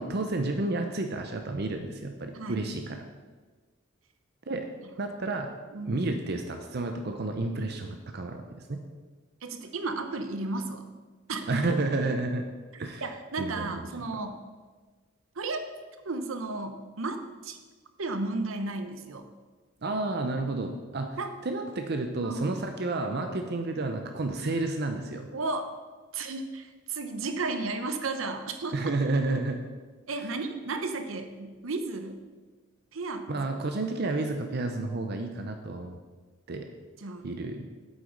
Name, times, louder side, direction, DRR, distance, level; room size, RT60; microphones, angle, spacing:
voice 1, 0.0-3.0 4.5-4.6 5.0-5.5 5.8-8.8 11.5-12.4 12.8-13.0 13.4-14.1 19.8-25.3 28.7-29.6 30.2-30.3 33.3-36.0 36.5-36.7 37.2-37.6, right 2 dB, 55° right, 5 dB, 0.7 m, -31 dB
voice 2, 5.7-6.0 9.4-10.9 11.3-11.5 13.0-14.4 15.4-15.6 16.0-17.2 17.4-17.6 18.0-19.2 21.2-21.3 22.2-22.6 25.3-25.7 26.1-28.9 30.1-32.2 32.9-33.5 37.0-37.3, right 3 dB, 85° right, 8 dB, 0.9 m, -33 dB
8.3 x 7.8 x 5.2 m, 1.4 s
head